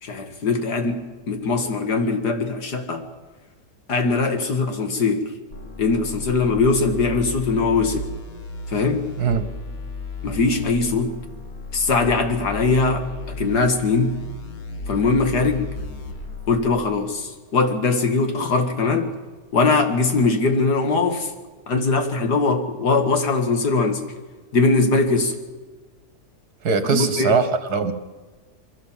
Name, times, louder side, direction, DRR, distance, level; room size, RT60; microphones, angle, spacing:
voice 1, 0.0-3.0 3.9-5.3 5.8-8.1 8.7-9.1 10.2-11.2 11.7-13.1 13.4-14.2 14.9-15.7 16.5-19.2 19.5-21.3 21.7-24.1 24.5-25.4 26.9-27.4, left 3 dB, 75° left, 6 dB, 2.5 m, -21 dB
sound 1, 5.5-16.9, left 3 dB, 60° left, 2.1 m, -34 dB
voice 2, 26.6-27.9, right 5 dB, 70° right, 9 dB, 2.0 m, -21 dB
23.5 x 16.5 x 7.4 m, 1.3 s
omnidirectional pair, 1.8 m